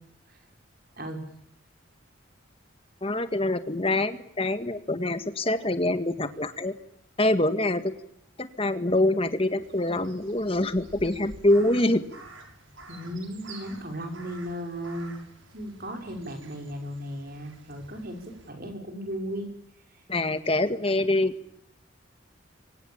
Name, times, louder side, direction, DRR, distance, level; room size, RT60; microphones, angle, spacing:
voice 1, 3.0-6.7 7.2-7.9 8.4-12.0 20.1-21.3, left 1 dB, 30° left, 10 dB, 1.8 m, -25 dB
Crow, 9.6-18.5, right 2 dB, 75° right, 6.0 m, -49 dB
voice 2, 12.9-15.1 15.5-19.5, equal, 50° right, 4 dB, 5.8 m, -36 dB
27.0 x 24.5 x 7.3 m, 0.77 s
head